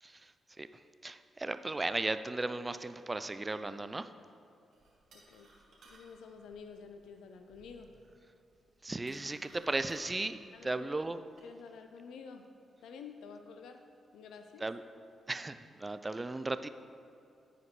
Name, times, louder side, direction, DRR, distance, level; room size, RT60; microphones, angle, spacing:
voice 1, 0.0-4.1 8.8-11.2 14.6-14.8 15.3-16.7, right 2 dB, 25° right, 11 dB, 0.4 m, -36 dB
sound 1, 4.7-11.5, right 2 dB, 70° right, 2.1 m, -62 dB
voice 2, 5.1-5.5 5.8-7.9 10.5-10.9 11.4-12.5 12.8-13.9 14.1-14.7, left 5 dB, 75° left, 6 dB, 0.4 m, -50 dB
14.5 x 5.0 x 3.2 m, 2.5 s
hypercardioid pair, 40°, 0 cm